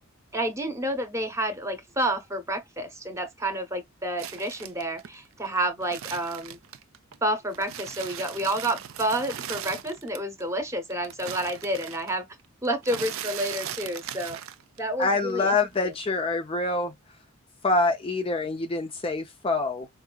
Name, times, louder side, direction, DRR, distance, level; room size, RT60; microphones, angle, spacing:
voice 1, 0.3-6.6 7.2-12.3 12.6-14.4 14.8-15.6, right 1 dB, 15° right, 0.8 m, -29 dB
sound 1, 4.2-7.2 7.5-10.4 10.7-15.0 15.3-16.2, right 10 dB, 70° right, 0.5 m, -39 dB
voice 2, 15.0-16.9 17.6-19.9, left 3 dB, 25° left, 0.4 m, -26 dB
4.7 x 2.5 x 2.2 m
head